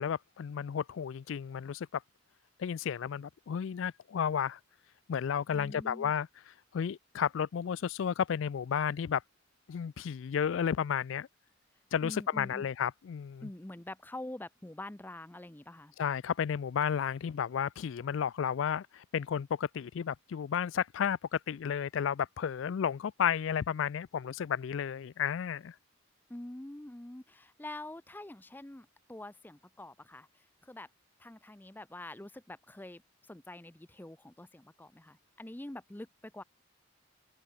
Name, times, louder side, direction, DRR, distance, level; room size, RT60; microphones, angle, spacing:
voice 1, 0.0-2.0 2.6-4.6 5.1-6.3 6.7-9.2 9.7-11.3 11.9-13.5 16.0-25.7, left 8 dB, 70° left, 0.4 m, -32 dB
voice 2, 5.5-6.1 12.0-12.7 13.4-15.9 26.3-30.9 31.2-33.0 33.3-36.4, left 1 dB, 10° left, 0.6 m, -46 dB
head